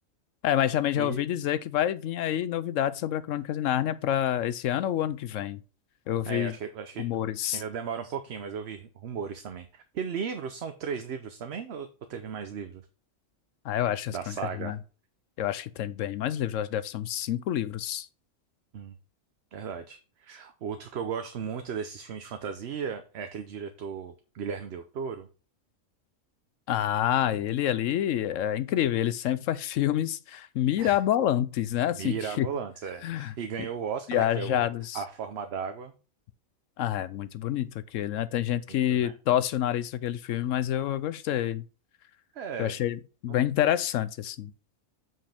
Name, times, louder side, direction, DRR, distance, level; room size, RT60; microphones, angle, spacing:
voice 1, 0.4-5.6 6.1-6.5 7.0-7.6 13.6-14.8 15.4-18.1 26.7-32.5 33.0-33.3 34.1-35.0 36.8-41.6 42.6-44.5, left 11 dB, 75° left, 0.9 m, -28 dB
voice 2, 6.3-7.1 7.4-12.8 14.1-14.8 18.7-19.0 19.5-25.3 30.8-31.0 31.9-34.7 34.9-35.9 38.7-39.2 42.3-42.8 43.3-43.4, right 6 dB, 60° right, 0.9 m, -36 dB
7.6 x 5.6 x 3.4 m
omnidirectional pair, 1.4 m